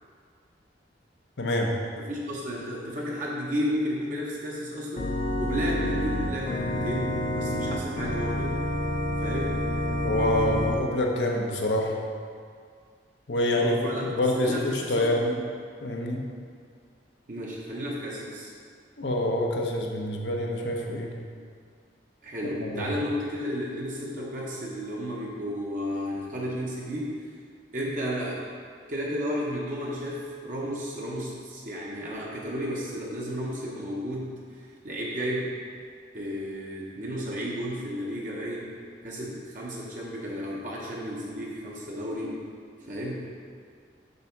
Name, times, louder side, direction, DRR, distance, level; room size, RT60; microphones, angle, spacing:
voice 1, 1.4-1.7 10.0-12.0 13.3-13.8 14.0-15.3 15.8-16.2 19.0-21.2 22.6-22.9, left 1 dB, 90° left, 0 dB, 0.8 m, -26 dB
voice 2, 2.0-5.1 5.4-8.6 9.2-9.6 13.5-14.1 14.3-15.3 17.3-18.5 22.2-27.3 27.7-28.4 28.9-35.5 36.1-38.7 39.0-42.4 42.9-43.2, equal, 50° right, -4 dB, 0.9 m, -33 dB
Organ, 5.0-10.8, left 1 dB, 45° left, 0.6 m, -28 dB
6.7 x 3.4 x 5.8 m, 2.1 s
head